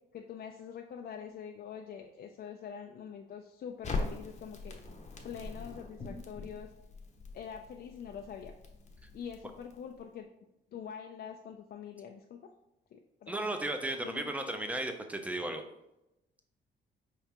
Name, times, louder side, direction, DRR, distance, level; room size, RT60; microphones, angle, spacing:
voice 1, 0.1-4.8 5.2-6.7 7.3-8.5 9.1-10.3 10.7-12.4 12.9-13.3 14.0-14.2, left 7 dB, 55° left, 3 dB, 0.4 m, -44 dB
Crackle, 3.8-10.0, left 3 dB, 35° left, 0.8 m, -42 dB
voice 2, 13.3-15.6, right 1 dB, 5° right, 5 dB, 0.5 m, -35 dB
4.7 x 3.3 x 2.9 m, 0.90 s
cardioid pair, 90°, 20 cm